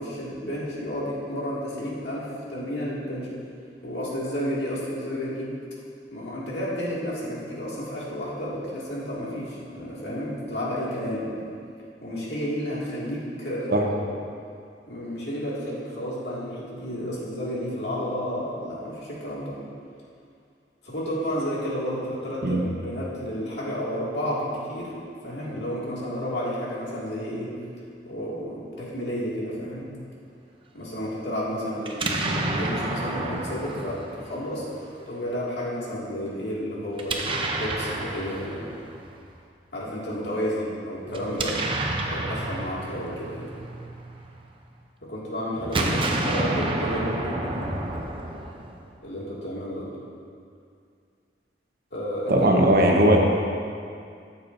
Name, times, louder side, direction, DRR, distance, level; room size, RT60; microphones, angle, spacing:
voice 1, 0.0-3.3 3.8-5.5 6.1-11.3 12.0-14.1 14.9-19.6 20.8-24.9 25.2-27.5 28.0-29.9 30.7-34.6 35.1-38.7 39.7-41.6 42.0-43.5 45.0-47.8 49.0-49.9 51.9-52.6, equal, 70° left, -7 dB, 2.3 m, -31 dB
Explosion, 31.8-34.9 36.9-39.2 41.1-44.5 45.6-48.9, right 2 dB, 30° right, 0.6 m, -30 dB
voice 2, 52.3-53.2, right 1 dB, 60° right, 0 dB, 1.0 m, -18 dB
13.0 x 7.1 x 2.7 m, 2.3 s
head